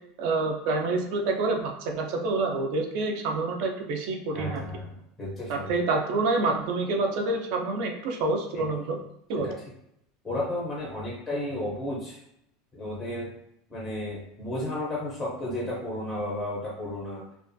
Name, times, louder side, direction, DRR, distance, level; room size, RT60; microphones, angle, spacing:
voice 1, 0.2-4.6 5.5-9.0 9.3-9.5, right 3 dB, 50° right, 3 dB, 0.4 m, -27 dB
voice 2, 4.3-5.7 8.5-8.6 9.4-9.5 10.2-12.2 12.7-13.3 13.7-17.2, left 1 dB, 10° left, -5 dB, 0.5 m, -33 dB
2.4 x 2.3 x 2.5 m, 0.77 s
supercardioid pair, 175°, 0 cm